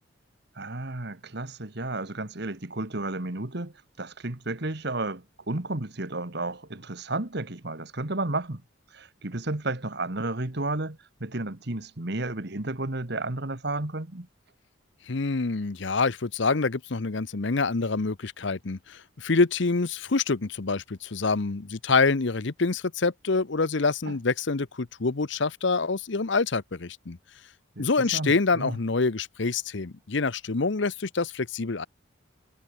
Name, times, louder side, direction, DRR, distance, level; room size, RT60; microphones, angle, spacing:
voice 1, 0.6-8.6 8.9-14.3 24.1-24.2 27.8-28.8, right 2 dB, 55° right, 1.7 m, -32 dB
voice 2, 15.1-27.2 27.8-31.9, left 4 dB, 60° left, 0.8 m, -26 dB
head